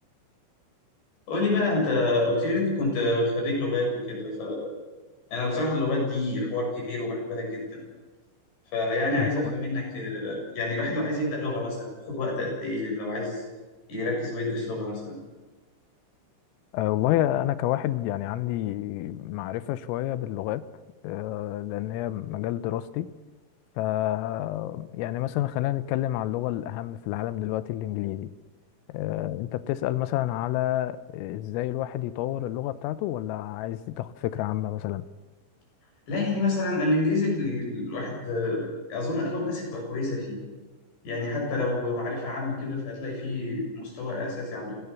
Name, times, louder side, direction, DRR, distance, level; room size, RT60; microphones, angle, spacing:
voice 1, 1.3-4.7 5.3-7.8 8.7-13.4 13.9-15.2 36.1-38.6 38.9-40.4 41.0-44.7, left 2 dB, 55° left, 9.4 m, -28 dB
voice 2, 9.2-9.5 16.7-20.6 21.0-23.1 23.8-28.3 28.9-35.1, left 14 dB, 85° left, 3.5 m, -29 dB
28.5 x 16.5 x 7.1 m
omnidirectional pair, 5.8 m